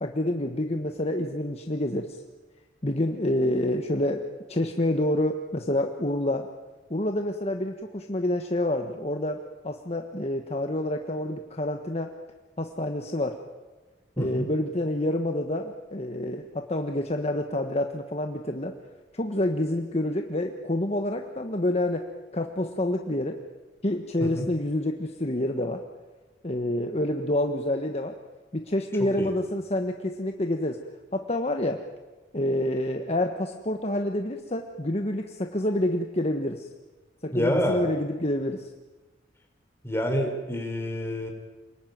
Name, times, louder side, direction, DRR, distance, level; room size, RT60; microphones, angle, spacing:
voice 1, 0.0-2.2 2.8-6.5 6.9-9.4 9.6-12.1 12.6-13.4 14.2-18.8 19.1-22.1 22.3-23.4 23.8-25.8 26.4-28.2 28.5-30.8 31.1-31.8 32.3-36.7 37.2-38.7, left 1 dB, 35° left, 5 dB, 1.4 m, -28 dB
voice 2, 14.2-14.5 24.2-24.5 29.0-29.3 37.3-37.8 39.8-41.3, equal, 15° left, 3 dB, 4.2 m, -27 dB
28.5 x 20.5 x 9.5 m, 1.2 s
head